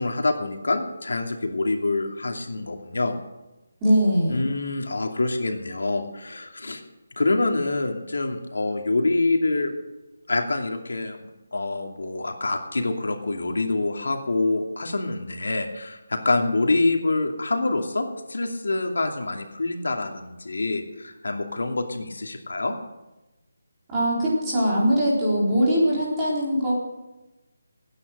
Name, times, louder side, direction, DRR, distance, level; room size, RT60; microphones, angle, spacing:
voice 1, 0.0-3.2 4.3-6.8 7.2-9.7 10.3-22.7, left 2 dB, 85° left, 3 dB, 2.6 m, -26 dB
voice 2, 3.8-4.5 23.9-26.7, equal, 10° right, -7 dB, 4.0 m, -21 dB
20.0 x 9.9 x 6.6 m, 1.0 s
hypercardioid pair, 180°, 0 cm